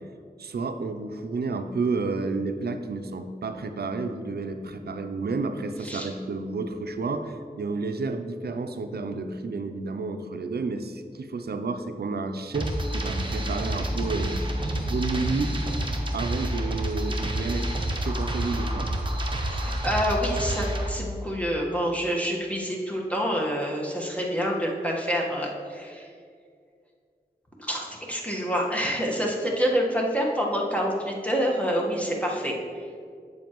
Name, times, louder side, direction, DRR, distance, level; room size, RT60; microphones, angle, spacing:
voice 1, 0.4-14.5 14.8-15.5 16.1-17.7 18.0-18.9, right 3 dB, 75° right, 7 dB, 0.5 m, -31 dB
sound 1, 12.5-20.9, right 1 dB, 30° right, 1.0 m, -28 dB
voice 2, 19.4-26.1 27.6-32.6, equal, 10° left, -2 dB, 1.3 m, -27 dB
7.9 x 7.1 x 3.0 m, 2.2 s
cardioid pair, 50°, 16 cm